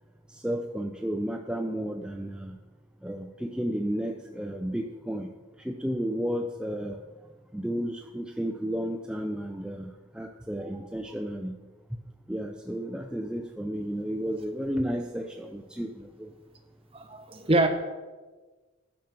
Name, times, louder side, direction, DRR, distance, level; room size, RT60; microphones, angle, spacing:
voice 1, 0.3-2.6 3.0-5.3 5.6-7.0 7.5-11.6 12.3-16.3, equal, 5° right, 0.4 m, -32 dB
voice 2, 16.9-17.7, right 2 dB, 30° right, 1.0 m, -24 dB
10.5 x 6.5 x 6.0 m
head